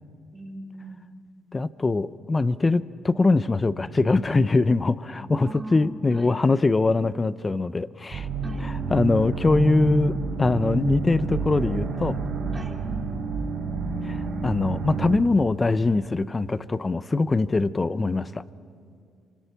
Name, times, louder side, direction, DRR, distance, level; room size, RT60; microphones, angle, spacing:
voice 1, 0.3-1.1 5.4-6.4 8.4-8.7 12.5-12.8, right 1 dB, 20° right, 1 dB, 3.3 m, -39 dB
voice 2, 1.5-8.3 8.6-10.1 10.4-12.2 14.0-14.2 14.4-18.4, left 3 dB, 25° left, 15 dB, 0.7 m, -22 dB
sound 1, 8.1-15.2, right 4 dB, 60° right, 4.3 m, -29 dB
26.5 x 24.5 x 5.9 m, 2.3 s
cardioid pair, 90°, 0 cm